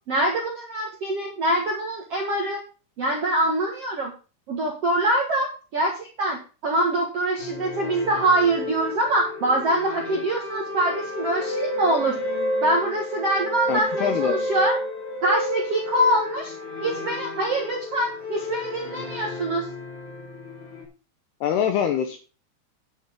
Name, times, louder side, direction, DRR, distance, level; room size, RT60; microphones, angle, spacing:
voice 1, 0.1-2.6 3.0-4.1 4.5-12.2 12.6-14.8 15.2-16.5 16.8-19.7, right 1 dB, 60° right, 0 dB, 1.6 m, -24 dB
sound 1, 7.4-20.8, left 1 dB, 40° left, 3.9 m, -31 dB
voice 2, 13.7-14.4 21.4-22.2, left 9 dB, 75° left, 7 dB, 2.5 m, -24 dB
10.5 x 10.0 x 3.7 m, 0.34 s
omnidirectional pair, 5.6 m